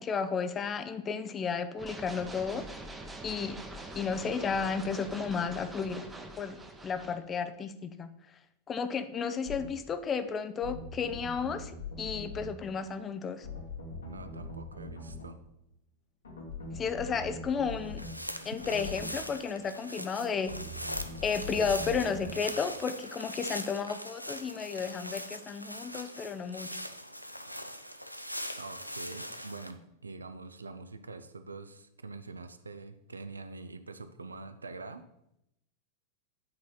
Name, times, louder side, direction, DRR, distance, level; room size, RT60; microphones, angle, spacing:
voice 1, 0.0-2.6 3.2-3.6 4.0-6.0 6.4-6.6 6.8-8.1 8.7-13.5 16.7-18.0 18.4-20.6 21.2-26.7, left 5 dB, 25° left, 11 dB, 0.5 m, -33 dB
sound 1, 1.8-7.2, right 2 dB, 10° right, 0.8 m, -44 dB
sound 2, 9.5-9.7 10.6-12.5 13.4-15.3 16.2-18.1 18.6-19.1 20.5-22.4, left 3 dB, 70° left, 1.7 m, -42 dB
voice 2, 14.0-15.4 28.6-35.1, right 3 dB, 75° right, 11 dB, 0.4 m, -45 dB
sound 3, 17.8-29.7, equal, 90° left, 0.4 m, -41 dB
8.6 x 4.2 x 3.9 m, 0.81 s
figure-of-eight pair, 90°, 0 cm